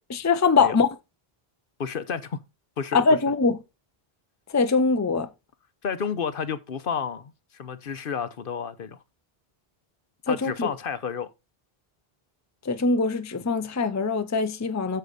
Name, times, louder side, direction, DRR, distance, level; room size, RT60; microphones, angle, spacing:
voice 1, 0.1-0.9 2.9-3.6 4.5-5.3 10.3-10.7 12.7-15.0, left 4 dB, 20° left, 0.6 m, -22 dB
voice 2, 1.8-2.4 2.8-3.0 5.8-7.3 7.6-9.0 10.3-11.3, left 6 dB, 65° left, 1.0 m, -30 dB
8.3 x 6.9 x 4.0 m
omnidirectional pair, 1.0 m